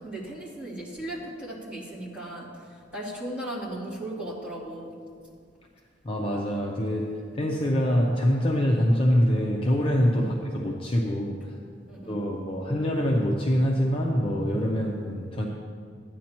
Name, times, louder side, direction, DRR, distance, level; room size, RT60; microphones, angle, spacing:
voice 1, 0.0-2.5 2.9-4.9 10.2-10.3 11.9-12.2 14.7-14.9, right 1 dB, 5° right, -8 dB, 2.7 m, -36 dB
voice 2, 6.0-11.6 12.1-15.5, equal, 30° left, -1 dB, 0.6 m, -25 dB
14.0 x 9.3 x 3.0 m, 2.1 s
head